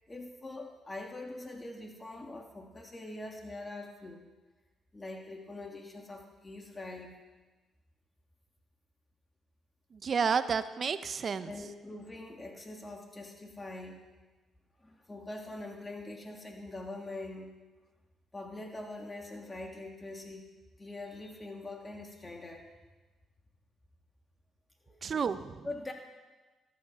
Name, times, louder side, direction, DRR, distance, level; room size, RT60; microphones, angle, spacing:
voice 1, 0.1-4.3 4.9-7.2 11.4-14.1 14.8-17.5 18.3-20.5 20.8-22.7 24.8-25.1 25.6-25.9, left 2 dB, 25° left, 2 dB, 3.1 m, -43 dB
voice 2, 9.9-11.5 25.0-25.7, right 6 dB, 50° right, 12 dB, 0.9 m, -31 dB
13.5 x 12.5 x 6.1 m, 1.2 s
supercardioid pair, 55°, 0 cm